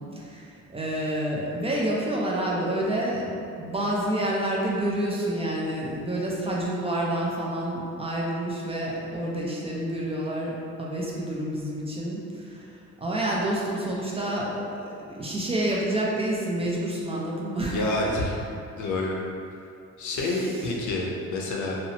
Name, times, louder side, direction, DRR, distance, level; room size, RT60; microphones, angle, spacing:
voice 1, 0.0-17.9 20.2-20.8, right 1 dB, 20° right, -4 dB, 0.4 m, -29 dB
voice 2, 17.6-18.4 18.8-19.2 20.0-21.8, left 2 dB, 75° left, -2 dB, 0.5 m, -28 dB
2.6 x 2.0 x 2.7 m, 2.5 s
cardioid pair, 90°, 30 cm